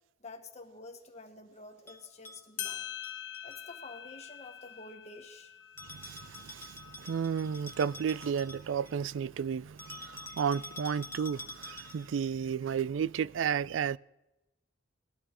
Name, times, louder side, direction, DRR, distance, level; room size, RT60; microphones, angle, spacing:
voice 1, 0.2-2.9 3.4-5.6, left 3 dB, 35° left, 1.5 m, -49 dB
Bell, 1.9-3.6 5.8-9.0 9.8-12.2, left 2 dB, 10° left, 1.4 m, -47 dB
sound 1, 2.3-2.4 2.6-7.7, left 10 dB, 70° left, 1.1 m, -44 dB
voice 2, 5.9-14.0, right 7 dB, 80° right, 0.4 m, -33 dB
20.0 x 12.5 x 3.0 m
head